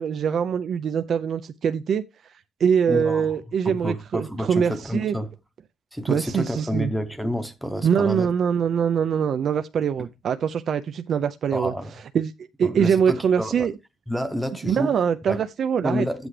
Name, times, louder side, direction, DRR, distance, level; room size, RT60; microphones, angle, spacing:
voice 1, 0.0-2.0 2.6-5.1 6.1-6.9 7.8-11.7 12.1-12.3 12.6-13.7 14.6-16.1, right 7 dB, 45° right, 0.5 m, -23 dB
voice 2, 2.9-3.4 3.6-5.3 5.9-8.3 11.5-11.9 12.6-13.7 14.1-14.9 15.3-15.4 15.8-16.3, equal, ahead, 0.8 m, -29 dB
13.0 x 8.0 x 3.2 m
cardioid pair, 170°, 0 cm